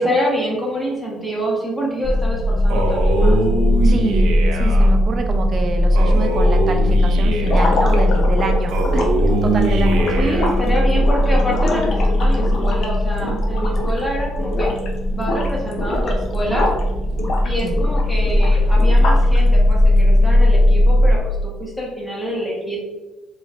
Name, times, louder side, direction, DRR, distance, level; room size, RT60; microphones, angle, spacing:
voice 1, 0.0-3.4 10.2-14.7 15.1-16.7 17.4-22.8, equal, 10° left, -3 dB, 1.1 m, -26 dB
sound 1, 2.0-21.2, left 1 dB, 25° left, 0.7 m, -17 dB
Male speech man speaking, 2.7-4.9 5.9-7.8 8.7-10.7, right 2 dB, 90° right, 0.6 m, -23 dB
voice 2, 3.8-10.1 17.6-17.7, right 3 dB, 40° right, 4 dB, 0.5 m, -26 dB
sound 2, 7.4-14.1 14.4-14.9 15.2-16.8 17.2-19.4, left 2 dB, 60° left, 0.6 m, -26 dB
4.0 x 3.1 x 2.4 m, 1.2 s
cardioid pair, 120°, 0 cm